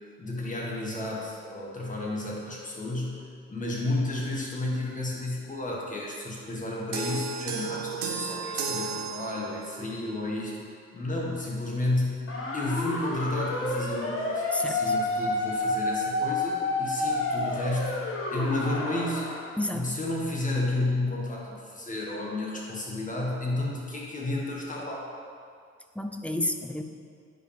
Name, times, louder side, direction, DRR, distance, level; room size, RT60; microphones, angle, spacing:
voice 1, 0.2-3.2 3.5-10.6 10.9-12.2 12.5-19.3 19.7-25.1, left 2 dB, 25° left, -3 dB, 1.7 m, -31 dB
sound 1, 6.9-9.8, right 5 dB, 85° right, 1.1 m, -33 dB
sound 2, 12.3-19.5, left 2 dB, 45° left, 1.3 m, -29 dB
voice 2, 14.5-14.9 19.6-20.0 26.0-26.8, left 1 dB, 5° left, 5 dB, 0.5 m, -31 dB
9.8 x 5.1 x 3.5 m, 2.2 s
cardioid pair, 90°, 30 cm